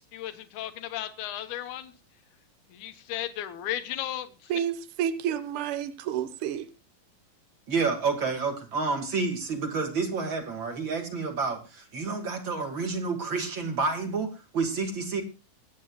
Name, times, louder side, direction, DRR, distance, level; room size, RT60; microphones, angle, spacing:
voice 1, 0.1-1.9 2.7-4.5, left 12 dB, 65° left, 2.4 m, -35 dB
voice 2, 4.5-6.7, right 9 dB, 80° right, 1.2 m, -30 dB
voice 3, 7.7-15.2, right 4 dB, 40° right, 2.4 m, -29 dB
25.0 x 9.1 x 2.4 m
omnidirectional pair, 4.0 m